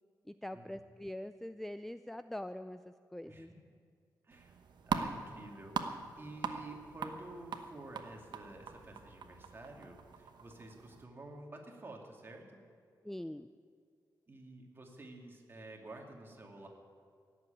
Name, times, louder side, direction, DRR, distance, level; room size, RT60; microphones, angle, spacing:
voice 1, 0.3-3.5 13.0-13.5, left 1 dB, 5° left, 11 dB, 0.3 m, -43 dB
sound 1, 4.3-11.0, right 6 dB, 80° right, 1.0 m, -42 dB
voice 2, 4.9-12.6 14.3-16.7, right 2 dB, 30° right, 1 dB, 2.4 m, -50 dB
17.5 x 7.7 x 9.1 m, 2.3 s
wide cardioid pair, 115°, 7 cm